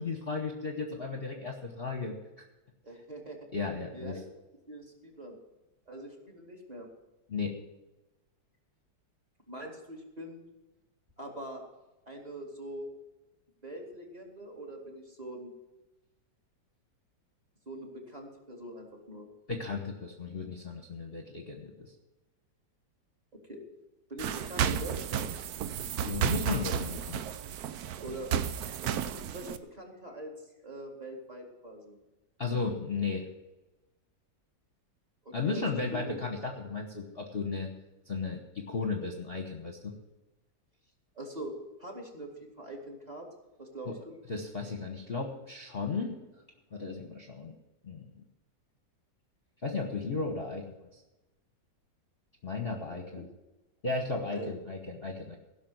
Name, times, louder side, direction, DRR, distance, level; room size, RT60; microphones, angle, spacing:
voice 1, 0.0-2.1 3.5-4.2 7.3-7.5 19.5-21.9 26.0-27.2 32.4-33.3 35.3-37.7 38.1-39.8 43.9-44.0 44.3-46.2 46.7-47.5 47.8-48.1 49.6-51.0 52.4-53.3 53.8-55.4, left 4 dB, 35° left, 2 dB, 1.2 m, -35 dB
voice 2, 2.8-3.4 3.9-4.2 4.7-5.4 5.9-6.9 9.5-10.4 11.2-11.6 12.1-12.9 13.6-15.5 17.7-19.3 23.5-23.6 24.1-25.3 28.0-28.3 28.8-30.3 30.6-32.0 35.2-35.6 35.9-36.2 41.1-41.5 41.8-42.3 42.6-43.3 43.6-44.2 53.1-53.2 54.3-54.5, right 1 dB, 20° right, 1 dB, 2.5 m, -43 dB
sound 1, 24.2-29.6, right 9 dB, 65° right, 1.0 m, -32 dB
16.0 x 6.1 x 7.9 m, 1.0 s
omnidirectional pair, 2.0 m